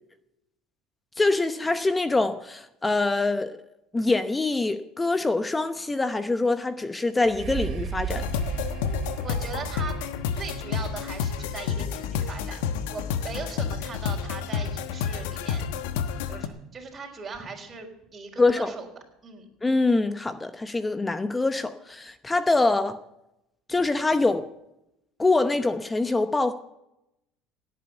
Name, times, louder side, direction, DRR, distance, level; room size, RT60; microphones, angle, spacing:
voice 1, 1.2-3.6 3.9-8.2 18.4-18.7 19.6-23.0 23.7-24.5 25.2-26.5, left 3 dB, 15° left, 11 dB, 0.8 m, -24 dB
sound 1, 7.2-15.0 15.6-15.7, right 7 dB, 55° right, 2.8 m, -37 dB
sound 2, 8.1-16.5, left 7 dB, 85° left, 1.1 m, -30 dB
voice 2, 9.2-10.0 10.3-12.6 12.9-15.7 16.3-18.9 19.2-19.5, right 5 dB, 25° right, -2 dB, 4.0 m, -39 dB
17.5 x 8.7 x 8.1 m, 0.86 s
supercardioid pair, 105°, 0 cm